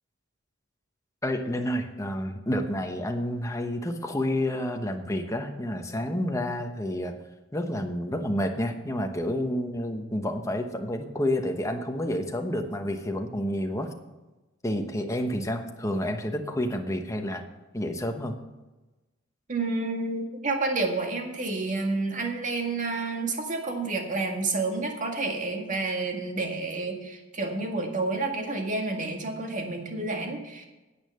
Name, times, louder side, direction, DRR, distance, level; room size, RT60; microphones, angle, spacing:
voice 1, 1.2-7.2 7.5-13.9 14.6-17.4 17.7-18.4, left 1 dB, 15° left, 4 dB, 1.1 m, -29 dB
voice 2, 19.5-30.7, right 3 dB, 40° right, 2 dB, 1.9 m, -29 dB
9.7 x 8.8 x 6.5 m, 1.1 s
head